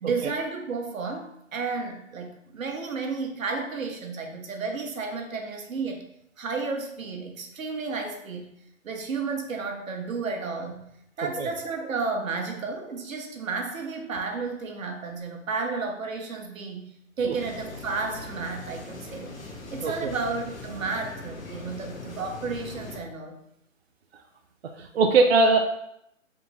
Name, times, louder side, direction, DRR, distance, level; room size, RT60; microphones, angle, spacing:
voice 1, 0.0-6.0 6.4-8.5 8.8-10.8 11.2-16.9 17.2-19.3 19.7-23.4, right 4 dB, 80° right, 3 dB, 1.0 m, -32 dB
sound 1, 17.3-23.0, left 2 dB, 85° left, 1.1 m, -41 dB
voice 2, 19.8-20.1 24.9-25.6, right 3 dB, 55° right, 2 dB, 0.4 m, -20 dB
3.6 x 2.9 x 3.9 m, 0.77 s
hypercardioid pair, 165°, 40 cm